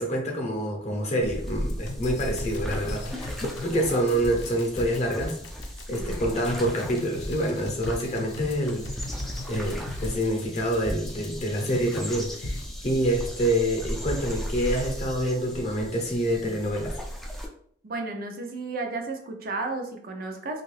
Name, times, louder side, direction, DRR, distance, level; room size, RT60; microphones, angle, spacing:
voice 1, 0.0-3.3 3.6-5.4 5.9-9.1 9.5-17.0, equal, 40° left, 1 dB, 0.7 m, -27 dB
sound 1, 1.2-17.5, equal, ahead, 0.4 m, -36 dB
sound 2, 1.7-12.1 12.4-12.7, left 2 dB, 90° left, 0.5 m, -40 dB
voice 2, 17.8-20.6, right 3 dB, 55° right, 3 dB, 0.5 m, -33 dB
2.7 x 2.4 x 3.1 m, 0.62 s
head